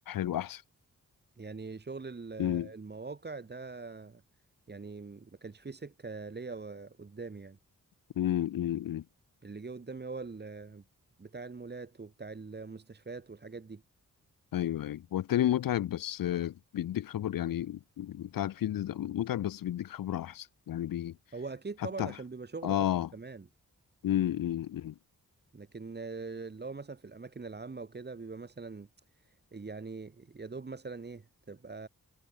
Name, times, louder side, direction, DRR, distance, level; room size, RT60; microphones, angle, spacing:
voice 1, 0.1-0.6 2.4-2.7 8.2-9.0 14.5-21.1 22.0-22.1 22.6-23.1 24.0-24.9, left 12 dB, 85° left, 0.6 m, -31 dB
voice 2, 1.4-4.2 4.7-7.6 9.4-10.8 11.2-13.8 21.3-23.5 25.5-28.9 29.2-31.9, right 4 dB, 30° right, 1.3 m, -42 dB
wide cardioid pair, 95°, 33 cm